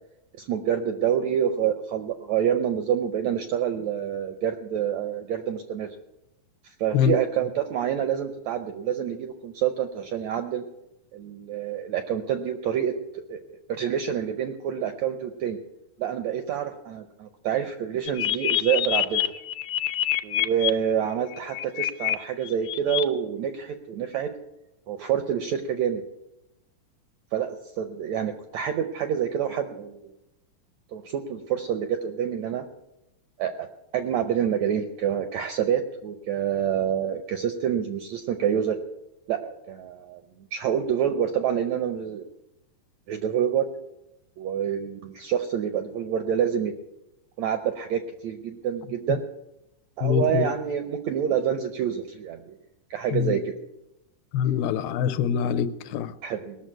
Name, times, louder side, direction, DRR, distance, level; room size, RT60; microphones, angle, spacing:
voice 1, 0.4-5.9 6.6-10.6 11.1-15.6 16.0-19.3 20.2-24.3 24.9-26.0 27.3-30.2 30.9-32.6 33.4-33.7 33.9-38.8 39.3-40.2 40.5-42.2 43.1-43.6 44.4-46.7 47.4-49.2 50.0-52.6 52.9-53.5 56.2-56.6, right 9 dB, 80° right, 8 dB, 1.6 m, -27 dB
sound 1, 18.1-20.7 21.3-22.1 22.5-23.0, left 14 dB, 75° left, 1.7 m, -26 dB
voice 2, 50.0-50.5 53.1-53.4 54.3-56.1, left 9 dB, 90° left, 12 dB, 2.6 m, -24 dB
19.0 x 6.7 x 8.9 m, 0.90 s
omnidirectional pair, 4.1 m